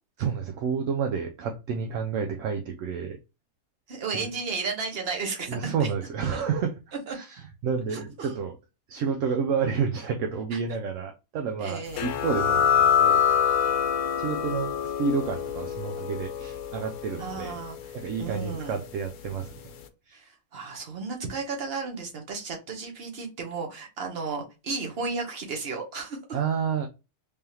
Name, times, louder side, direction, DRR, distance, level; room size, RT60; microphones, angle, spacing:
voice 1, 0.2-3.2 4.1-4.3 5.5-8.6 8.9-13.2 14.2-17.6 17.9-19.6 20.1-20.2 26.3-26.9, right 6 dB, 70° right, 0.9 m, -30 dB
voice 2, 3.9-5.9 6.3-6.4 7.1-7.2 7.9-8.3 10.5-10.6 11.6-12.1 17.2-17.8 18.2-18.8 20.1-26.2, right 4 dB, 45° right, 1.2 m, -34 dB
sound 1, 12.0-19.2, left 8 dB, 80° left, 1.1 m, -26 dB
3.5 x 3.4 x 2.8 m
omnidirectional pair, 1.5 m